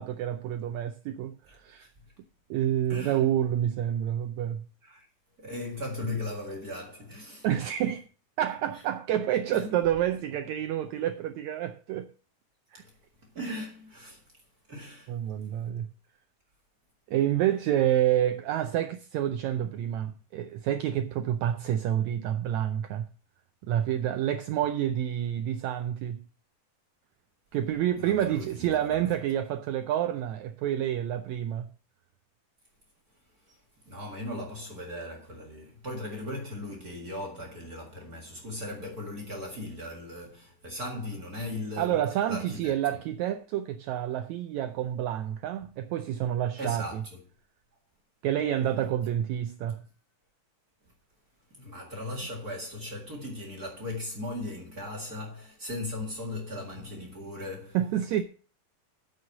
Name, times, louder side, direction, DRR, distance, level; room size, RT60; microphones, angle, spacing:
voice 1, 0.0-1.9 2.5-4.6 7.4-8.0 8.4-12.1 12.7-12.8 15.1-15.9 17.1-23.1 23.7-26.2 27.5-31.7 41.8-47.0 48.2-49.8 57.7-58.2, right 11 dB, 85° right, 1.6 m, -28 dB
voice 2, 1.5-1.9 2.9-3.2 4.8-5.1 5.4-7.4 8.7-8.8 9.5-9.7 12.8-12.9 13.3-14.2 14.7-15.1 28.0-29.2 33.4-33.6 33.8-42.0 42.3-42.7 46.6-47.2 49.7-49.8 51.5-57.8, left 1 dB, 35° right, 1.7 m, -38 dB
9.1 x 6.4 x 7.2 m
omnidirectional pair, 3.9 m